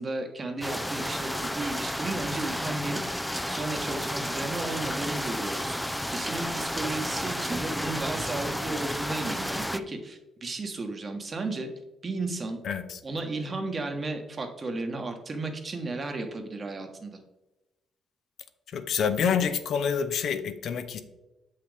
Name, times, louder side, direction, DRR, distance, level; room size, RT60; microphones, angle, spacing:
voice 1, 0.0-3.0 3.5-11.7 12.0-12.6 13.0-17.2, right 3 dB, 35° right, 4 dB, 1.3 m, -34 dB
sound 1, 0.6-9.8, equal, 5° left, 0.4 m, -32 dB
voice 2, 12.6-13.0 18.7-21.0, left 7 dB, 65° left, 10 dB, 0.7 m, -27 dB
7.7 x 5.8 x 3.4 m, 1.0 s
cardioid pair, 90°, 0 cm